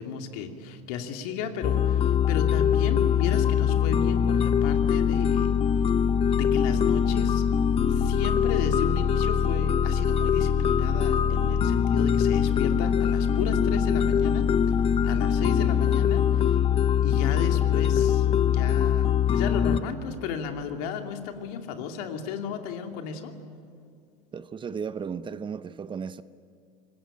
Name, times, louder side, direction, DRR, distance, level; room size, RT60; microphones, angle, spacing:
voice 1, 0.0-5.6 6.3-7.4 7.9-14.8 15.0-16.6 17.0-23.3, left 6 dB, 70° left, 2.7 m, -34 dB
sound 1, 1.6-19.8, left 8 dB, 30° left, 0.7 m, -23 dB
voice 2, 24.3-26.2, right 6 dB, 25° right, 0.8 m, -35 dB
25.0 x 20.0 x 8.9 m
supercardioid pair, 110°, 21 cm